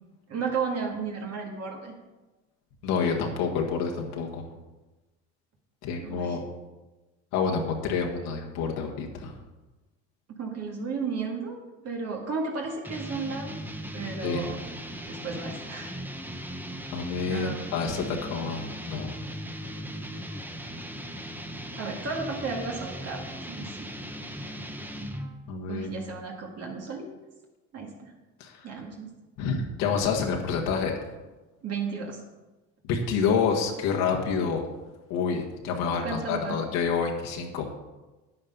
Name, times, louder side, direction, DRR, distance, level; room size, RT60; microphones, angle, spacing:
voice 1, 0.3-1.9 6.0-6.4 10.4-13.6 13.9-14.6 15.1-15.9 17.3-18.2 21.8-23.9 25.7-27.1 27.7-28.1 28.6-29.1 31.6-32.2 36.0-36.6, right 4 dB, 50° right, 0 dB, 2.0 m, -34 dB
voice 2, 2.8-4.4 5.8-6.4 7.3-9.3 14.2-14.5 16.9-19.2 25.5-26.0 28.4-28.6 29.4-30.9 32.8-34.7 35.1-37.7, left 5 dB, 85° left, 1 dB, 1.7 m, -28 dB
sound 1, 12.8-25.4, equal, 5° right, 1.0 m, -38 dB
9.8 x 8.6 x 5.4 m, 1.1 s
cardioid pair, 105°, 32 cm